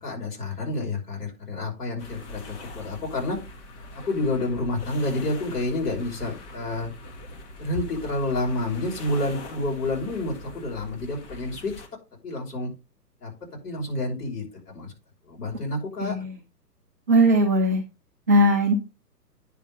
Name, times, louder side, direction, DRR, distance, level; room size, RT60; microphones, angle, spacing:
voice 1, 0.0-3.4 4.0-6.9 7.6-11.7 12.2-12.7 13.2-13.3 13.6-14.4 14.7-14.9 15.3-16.2, left 2 dB, 65° left, -1 dB, 6.0 m, -29 dB
sound 1, 2.0-11.9, left 1 dB, 45° left, 2.1 m, -43 dB
voice 2, 16.0-16.4 17.1-17.8 18.3-18.7, right 1 dB, 10° right, -3 dB, 0.5 m, -19 dB
10.0 x 4.0 x 5.8 m, 0.29 s
figure-of-eight pair, 125°, 49 cm